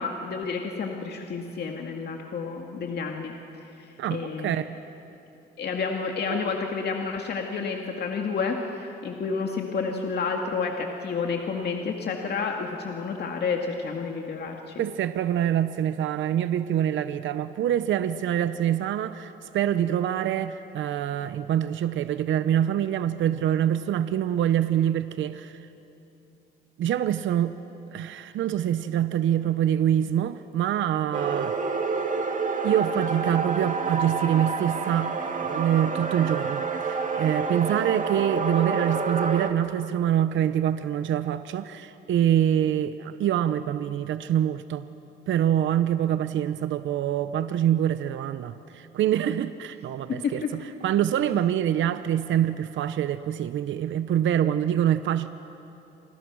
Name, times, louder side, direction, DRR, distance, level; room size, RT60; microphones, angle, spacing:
voice 1, 0.0-3.3 3.8-4.6 5.6-14.8 50.1-50.5, left 5 dB, 55° left, 1 dB, 2.4 m, -30 dB
voice 2, 4.0-4.8 6.3-6.5 14.8-25.6 26.8-27.6 27.9-31.5 32.6-44.9 45.3-55.3, right 10 dB, 75° right, 12 dB, 0.9 m, -25 dB
sound 1, 31.1-39.5, right 4 dB, 40° right, 2.2 m, -28 dB
29.0 x 25.5 x 6.3 m, 3.0 s
cardioid pair, 90°, 20 cm